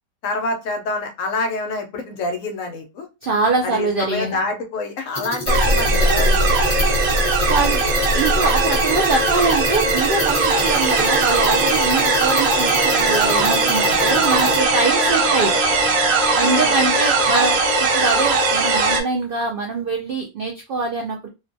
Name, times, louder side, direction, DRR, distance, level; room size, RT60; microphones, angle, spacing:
voice 1, 0.2-3.1 3.6-6.7 10.5-10.8 14.0-14.3 16.3-16.9, left 3 dB, 70° left, 5 dB, 0.9 m, -27 dB
voice 2, 3.2-4.4 7.4-7.8 8.1-15.7 16.4-21.3, right 3 dB, 90° right, 1 dB, 0.4 m, -23 dB
sound 1, 5.1-14.6, left 1 dB, 30° left, 0.6 m, -30 dB
sound 2, 5.5-19.0, right 3 dB, 75° right, 1.0 m, -18 dB
2.5 x 2.2 x 2.5 m, 0.26 s
omnidirectional pair, 1.5 m